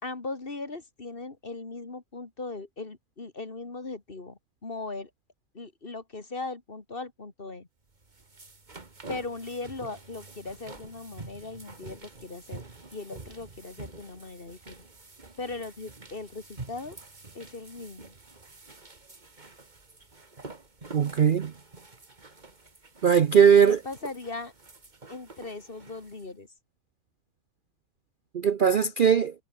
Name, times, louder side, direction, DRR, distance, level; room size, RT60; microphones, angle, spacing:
voice 1, 0.0-5.1 5.5-7.7 9.1-12.6 12.9-14.9 15.4-17.0 17.3-18.2 23.7-24.5 25.1-26.5, left 3 dB, 40° left, 2.4 m, -39 dB
sound 1, 7.9-26.3, right 3 dB, 30° right, 2.2 m, -47 dB
voice 2, 20.9-21.5 23.0-23.8 28.3-29.3, right 7 dB, 50° right, 0.7 m, -19 dB
omnidirectional pair, 1.5 m